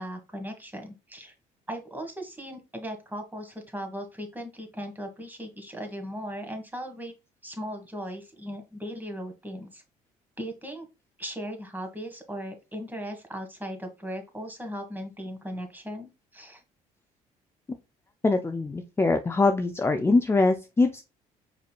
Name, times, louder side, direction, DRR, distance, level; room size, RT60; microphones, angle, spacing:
voice 1, 0.0-1.3 1.7-7.1 7.4-9.8 10.4-10.9 11.2-16.6, equal, 10° right, 4 dB, 1.6 m, -38 dB
voice 2, 18.2-21.0, left 3 dB, 15° left, 7 dB, 0.5 m, -23 dB
4.8 x 4.5 x 2.3 m, 0.27 s
supercardioid pair, 70°, 16 cm